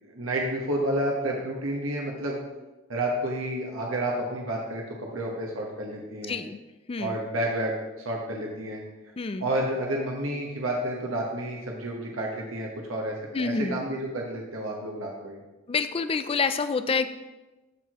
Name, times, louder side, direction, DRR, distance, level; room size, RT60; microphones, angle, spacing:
voice 1, 0.0-2.4 2.9-6.4 7.0-8.8 9.4-15.4, right 1 dB, 75° right, -1 dB, 1.3 m, -30 dB
voice 2, 6.3-6.6 6.9-7.2 9.2-9.5 13.3-13.8 15.7-17.1, left 4 dB, 25° left, 11 dB, 0.4 m, -27 dB
13.5 x 4.7 x 3.0 m, 1.1 s
head